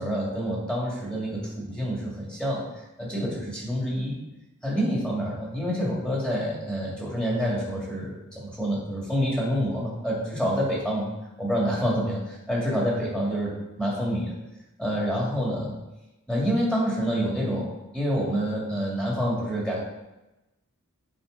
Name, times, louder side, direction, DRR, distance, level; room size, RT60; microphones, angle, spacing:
voice 1, 0.0-2.6 3.0-4.2 4.6-11.1 11.4-13.5 13.8-14.3 14.8-15.8 16.3-17.7 17.9-19.8, equal, 5° left, -5 dB, 2.4 m, -27 dB
8.7 x 5.3 x 4.0 m, 0.99 s
head